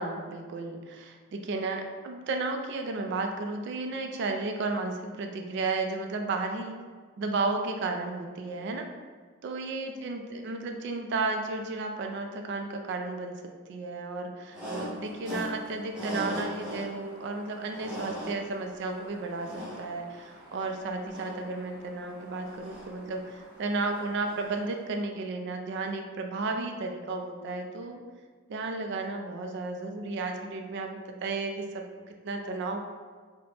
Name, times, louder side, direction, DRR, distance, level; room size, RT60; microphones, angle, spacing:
voice 1, 0.0-6.8 7.2-8.9 9.4-28.0 28.5-32.8, right 3 dB, 55° right, 4 dB, 0.3 m, -33 dB
sound 1, 14.5-24.8, equal, 5° right, 0.8 m, -41 dB
2.8 x 2.1 x 3.1 m, 1.5 s
head